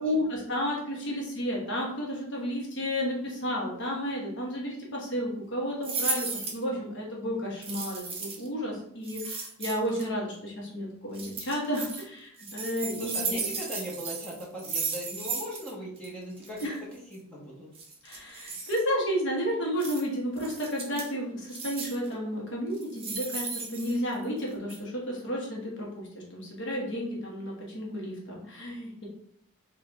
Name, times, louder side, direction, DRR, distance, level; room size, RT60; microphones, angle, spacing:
voice 1, 0.0-13.5 16.6-16.8 18.0-25.9 26.1-29.1, equal, 55° left, -2 dB, 1.0 m, -32 dB
sound 1, 5.8-6.6 7.6-8.5 9.0-10.0 11.1-12.0 12.4-15.7 16.0-16.1 16.4-16.7 17.7-18.8 19.8-20.0 20.4-21.1 21.5-22.1 22.7-24.4 24.7-24.8, right 4 dB, 25° right, 0.7 m, -35 dB
voice 2, 13.0-16.7 17.1-17.7, equal, 5° left, -6 dB, 1.1 m, -39 dB
4.0 x 2.5 x 3.4 m, 0.68 s
head